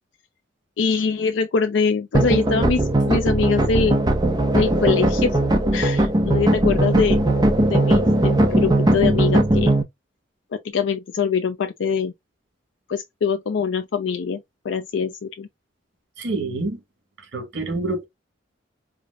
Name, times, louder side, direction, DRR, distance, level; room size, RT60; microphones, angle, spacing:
voice 1, 0.8-4.0 4.5-5.4 5.7-7.3 7.6-9.7 10.5-12.1 12.9-15.5, left 5 dB, 70° left, 0.4 m, -23 dB
sound 1, 2.1-9.8, right 1 dB, 20° right, 0.5 m, -19 dB
voice 2, 16.2-16.8 17.3-18.1, right 2 dB, 65° right, 1.9 m, -27 dB
4.8 x 2.0 x 2.3 m
head